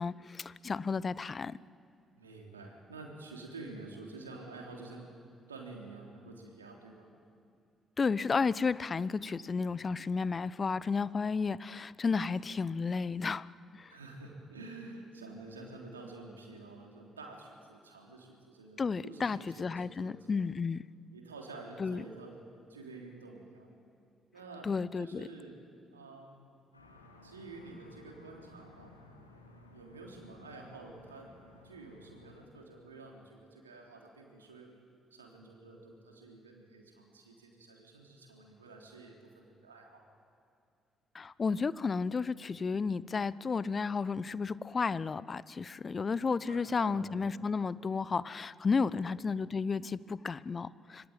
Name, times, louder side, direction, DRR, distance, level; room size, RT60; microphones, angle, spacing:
voice 1, 0.0-1.6 8.0-13.5 13.7-13.9 18.8-20.8 21.8-22.0 24.6-25.3 41.1-51.1, left 5 dB, 35° left, 19 dB, 0.8 m, -32 dB
voice 2, 2.2-5.1 5.5-7.1 13.9-20.1 21.1-22.4 22.7-23.7 24.3-25.6 25.9-26.5 27.2-28.9 29.7-31.3 31.6-34.7 35.1-40.1 46.5-47.1 47.3-47.4 48.9-49.1, right 3 dB, 85° right, 0 dB, 3.5 m, -49 dB
sound 1, 26.7-32.5, left 2 dB, 90° left, 2.2 m, -57 dB
25.5 x 23.5 x 9.2 m, 2.4 s
figure-of-eight pair, 45°, 0 cm